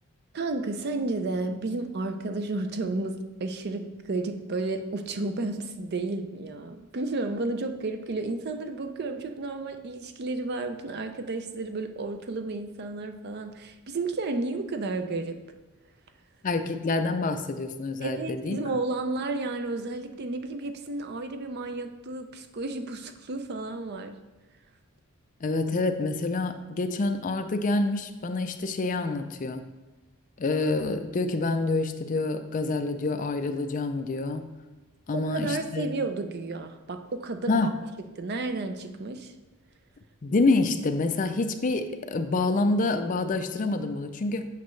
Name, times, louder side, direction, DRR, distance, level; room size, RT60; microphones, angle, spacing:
voice 1, 0.3-15.4 18.0-24.2 35.1-37.5 38.2-39.3, right 3 dB, 50° right, 8 dB, 0.5 m, -32 dB
voice 2, 16.4-18.6 25.4-29.6 30.4-34.5 35.1-35.9 37.5-37.7 40.2-44.4, left 3 dB, 35° left, 7 dB, 0.4 m, -27 dB
8.3 x 5.1 x 3.2 m, 1.1 s
head